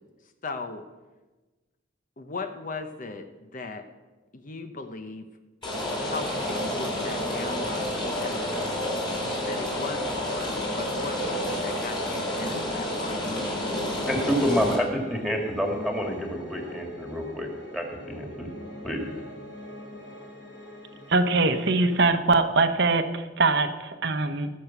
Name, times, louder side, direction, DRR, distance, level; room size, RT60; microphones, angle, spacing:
voice 1, 0.4-0.8 2.2-3.8 4.3-5.3 6.0-8.5 9.2-13.6, left 3 dB, 45° left, 7 dB, 0.8 m, -38 dB
Rain, 5.6-14.8, left 1 dB, 25° left, 4.0 m, -29 dB
Piano, 5.9-22.0, equal, 80° left, 4.0 m, -43 dB
voice 2, 14.1-18.5 18.8-19.0, equal, 5° left, 1 dB, 2.2 m, -28 dB
voice 3, 21.1-24.5, right 3 dB, 65° right, 7 dB, 0.9 m, -22 dB
20.0 x 6.7 x 5.9 m, 1.2 s
head